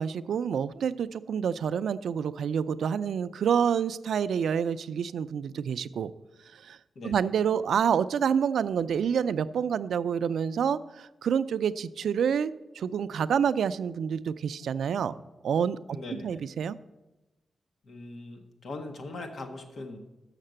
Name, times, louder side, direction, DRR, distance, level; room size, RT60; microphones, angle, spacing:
voice 1, 0.0-6.1 6.5-6.8 7.0-15.1 15.4-15.8 16.2-16.8, right 7 dB, 85° right, 14 dB, 0.3 m, -28 dB
voice 2, 6.9-7.3 15.9-16.4 17.8-20.0, left 2 dB, 60° left, 5 dB, 1.2 m, -40 dB
6.6 x 6.5 x 7.7 m, 1.0 s
wide cardioid pair, 160°, 0 cm